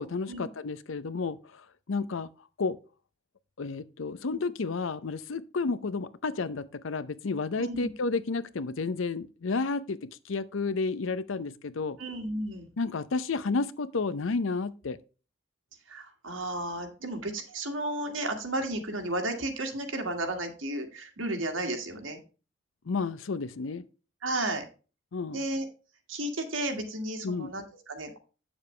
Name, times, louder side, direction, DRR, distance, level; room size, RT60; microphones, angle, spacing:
voice 1, 0.0-2.3 2.6-2.8 3.6-12.0 12.8-15.0 22.9-23.8 25.1-25.5 27.2-27.5, left 4 dB, 80° left, 0.6 m, -31 dB
voice 2, 7.6-7.9 12.0-12.7 15.9-22.2 24.2-24.7 25.3-25.7 26.1-28.2, right 1 dB, 85° right, 1.9 m, -33 dB
8.5 x 7.1 x 3.2 m
head